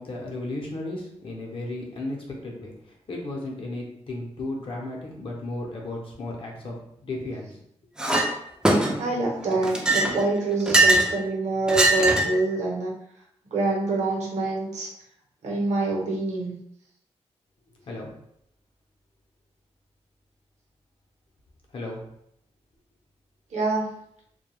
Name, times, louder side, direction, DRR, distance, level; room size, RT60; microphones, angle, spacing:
voice 1, 0.0-2.2 2.4-2.7 3.1-6.7 7.0-7.5 17.9-18.1 21.7-22.0, left 2 dB, 50° left, -1 dB, 0.7 m, -34 dB
Chink clink, 8.0-8.3 8.6-9.2 9.6-11.1 11.7-12.4, right 2 dB, 5° right, 0.3 m, -21 dB
voice 2, 9.0-12.9 13.5-14.9 15.4-16.5 23.5-23.8, right 2 dB, 80° right, -2 dB, 0.8 m, -26 dB
2.2 x 2.2 x 3.0 m, 0.75 s
wide cardioid pair, 125°, 12 cm